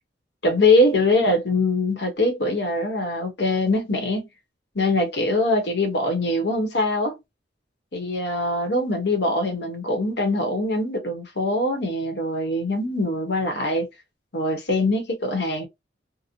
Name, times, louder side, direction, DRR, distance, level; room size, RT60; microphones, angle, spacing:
voice 1, 0.4-4.3 4.7-7.2 7.9-13.9 14.3-15.7, left 2 dB, 70° left, 1.0 m, -23 dB
2.9 x 2.1 x 2.5 m
head